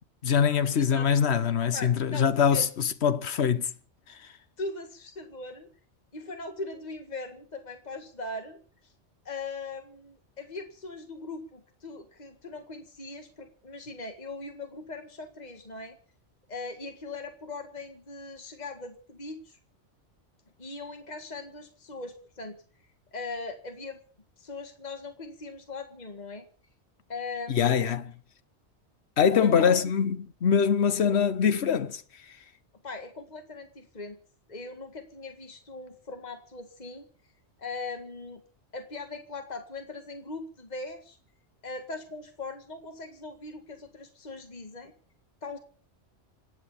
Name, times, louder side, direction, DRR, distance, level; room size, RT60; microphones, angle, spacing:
voice 1, 0.2-3.7 27.5-28.1 29.2-32.0, left 7 dB, 65° left, 1.2 m, -23 dB
voice 2, 0.7-1.1 1.7-2.7 4.6-5.7 6.1-8.6 9.3-16.0 16.5-19.6 20.6-22.6 23.1-24.0 24.4-26.5 27.1-27.9 29.3-29.8 31.1-31.3 32.8-34.2 34.5-37.1 37.6-38.4 38.7-41.2 41.6-44.9 45.4-45.6, left 3 dB, 35° left, 2.0 m, -40 dB
26.5 x 9.3 x 5.7 m
omnidirectional pair, 1.2 m